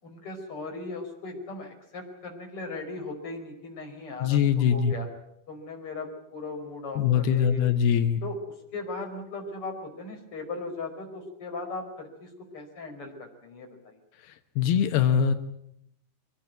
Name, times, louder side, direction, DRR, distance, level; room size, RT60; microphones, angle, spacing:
voice 1, 0.0-5.1 5.5-7.6 8.2-14.0, left 3 dB, 35° left, 2 dB, 5.9 m, -38 dB
voice 2, 4.2-4.9 7.0-8.2 14.2-15.4, left 8 dB, 85° left, 7 dB, 3.1 m, -23 dB
24.5 x 20.0 x 9.4 m, 0.76 s
omnidirectional pair, 4.4 m